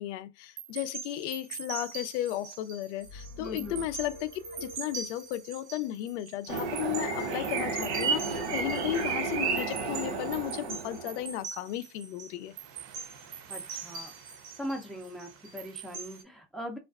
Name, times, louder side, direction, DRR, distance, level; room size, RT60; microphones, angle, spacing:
voice 1, 0.0-12.5, left 13 dB, 85° left, 0.5 m, -35 dB
sound 1, 0.6-16.2, right 6 dB, 45° right, 0.7 m, -43 dB
sound 2, 3.0-5.5, left 1 dB, 30° left, 0.9 m, -47 dB
voice 2, 3.4-3.8 13.5-14.1 14.6-16.8, equal, ahead, 0.4 m, -40 dB
sound 3, 6.5-11.3, right 4 dB, 75° right, 1.2 m, -31 dB
2.4 x 2.2 x 2.3 m
supercardioid pair, 140°, 34 cm